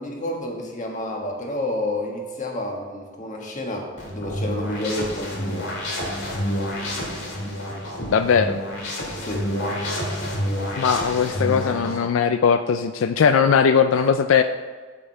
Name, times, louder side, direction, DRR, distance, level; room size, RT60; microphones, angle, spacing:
voice 1, 0.0-3.9 4.1-5.7 9.2-9.5, left 1 dB, 40° left, 1 dB, 1.4 m, -29 dB
sound 1, 4.0-12.0, equal, 65° left, 2.0 m, -29 dB
voice 2, 8.1-8.6 10.8-14.4, left 6 dB, 85° left, 9 dB, 0.4 m, -19 dB
7.4 x 7.0 x 4.5 m, 1.4 s
head